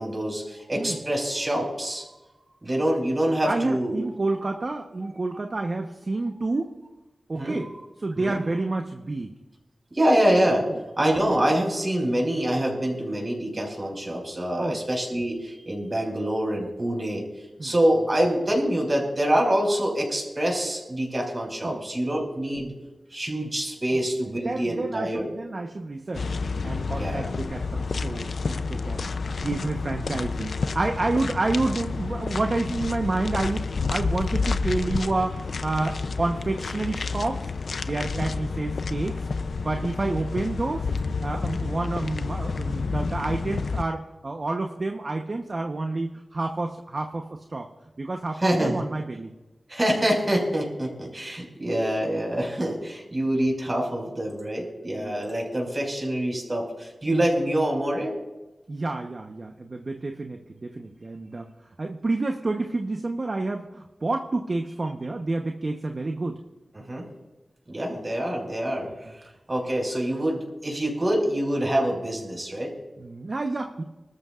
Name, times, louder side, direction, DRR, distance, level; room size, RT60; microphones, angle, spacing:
voice 1, 0.0-2.0 2.6-4.0 7.4-7.6 8.2-8.5 9.9-10.7 11.0-17.3 17.6-22.7 23.1-25.3 27.0-27.3 38.1-38.2 48.4-48.8 49.7-58.1 66.7-67.1 67.7-68.9 69.5-72.7, right 1 dB, 30° right, 0 dB, 5.4 m, -25 dB
voice 2, 3.4-6.7 7.3-7.7 8.0-9.3 10.7-10.8 14.6-14.8 17.6-17.7 21.6-22.2 23.9-24.0 24.4-26.3 26.6-29.1 29.4-37.5 37.9-39.2 39.6-40.9 41.2-47.7 48.0-49.3 54.9-55.3 57.1-57.3 58.7-61.5 61.8-66.4 68.8-68.9 73.0-73.8, right 2 dB, 50° right, 4 dB, 1.0 m, -29 dB
sound 1, 26.1-43.8, left 4 dB, 80° left, 0.5 m, -30 dB
25.5 x 13.5 x 2.5 m, 1.1 s
wide cardioid pair, 60°, 0 cm